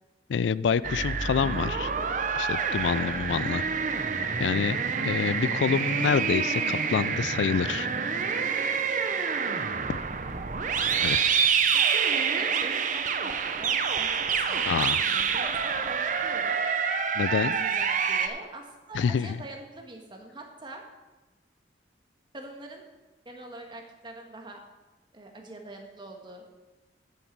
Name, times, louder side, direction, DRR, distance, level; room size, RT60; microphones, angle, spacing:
voice 1, 0.3-1.9 2.3-3.7 4.4-4.8 5.0-7.9 11.0-11.4 14.6-15.0 17.1-17.6 18.9-19.4, left 6 dB, 90° left, 19 dB, 0.3 m, -27 dB
sound 1, 0.8-18.3, right 6 dB, 45° right, 0.7 m, -27 dB
voice 2, 9.1-9.7 11.7-16.6 17.4-20.8 22.3-22.8 23.2-24.6 25.1-26.4, right 2 dB, 25° right, 2 dB, 1.5 m, -44 dB
9.8 x 9.4 x 4.6 m, 1.2 s
head